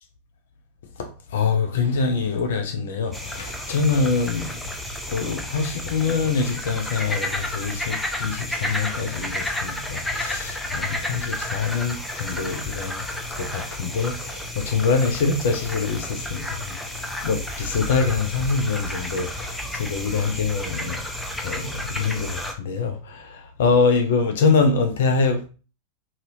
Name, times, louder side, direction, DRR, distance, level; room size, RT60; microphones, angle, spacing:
voice 1, 1.0-4.7 5.1-13.0 13.4-21.0 21.4-25.5, left 4 dB, 60° left, 0.4 m, -24 dB
sound 1, 3.1-22.5, left 1 dB, 5° left, 0.5 m, -31 dB
2.7 x 2.6 x 2.6 m
figure-of-eight pair, 90°, 0 cm